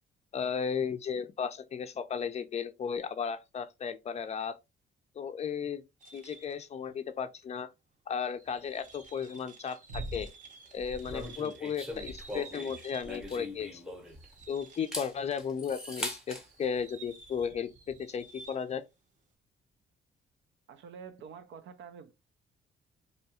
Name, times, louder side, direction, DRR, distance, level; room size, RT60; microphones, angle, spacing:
voice 1, 0.3-4.6 5.2-5.8 6.1-7.7 8.1-10.3 10.7-13.9 14.5-18.8, left 7 dB, 35° left, 0.4 m, -35 dB
sound 1, 6.0-6.7 7.4-7.5 8.2-13.5 13.8-15.4 15.9-18.8, right 4 dB, 40° right, 0.7 m, -52 dB
sound 2, 9.9-10.3 10.8-11.3 11.9-12.5 13.0-13.5 14.1-14.4 15.1-15.5 16.5-16.6, right 1 dB, 85° right, 0.9 m, -44 dB
sound 3, 11.1-14.3 14.7-16.5, left 1 dB, 5° right, 0.8 m, -41 dB
voice 2, 20.7-22.1, right 6 dB, 70° right, 0.5 m, -47 dB
2.7 x 2.2 x 2.8 m
cardioid pair, 90°, 20 cm